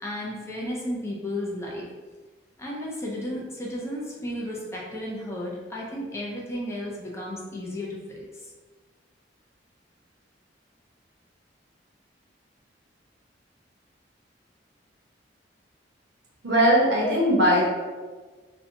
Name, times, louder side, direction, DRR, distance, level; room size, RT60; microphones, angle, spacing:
voice 1, 0.0-1.9 2.6-8.2, left 1 dB, 15° left, -4 dB, 0.4 m, -33 dB
voice 2, 16.4-17.6, equal, 75° right, -3 dB, 0.7 m, -19 dB
2.6 x 2.1 x 2.7 m, 1.4 s
head